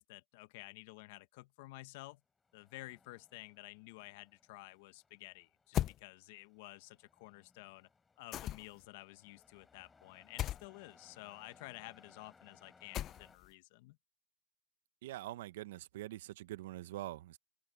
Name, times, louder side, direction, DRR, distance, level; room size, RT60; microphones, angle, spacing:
voice 1, 0.0-2.2 2.5-7.9 8.2-14.0, left 21 dB, 55° left, 1.2 m, -52 dB
Truck, 2.3-13.4, left 4 dB, 10° left, 4.4 m, -67 dB
sound 1, 5.7-6.0 8.3-8.8 10.4-10.6 12.9-13.5, left 12 dB, 30° left, 0.5 m, -36 dB
voice 2, 15.0-17.4, right 15 dB, 65° right, 0.9 m, -44 dB
open air
supercardioid pair, 150°, 0 cm